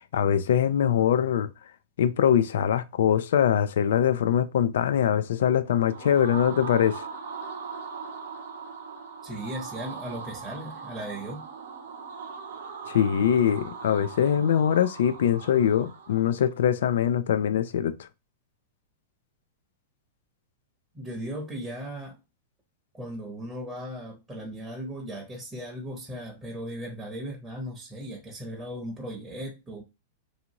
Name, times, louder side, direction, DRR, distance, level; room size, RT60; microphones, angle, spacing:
voice 1, 0.1-1.5 2.0-7.1 12.9-18.1, left 9 dB, 80° left, 0.3 m, -23 dB
sound 1, 5.7-16.5, right 5 dB, 80° right, 0.7 m, -40 dB
voice 2, 9.2-11.4 20.9-22.2 22.9-29.8, equal, 10° right, 0.7 m, -37 dB
2.7 x 2.4 x 2.8 m
hypercardioid pair, 135°, 0 cm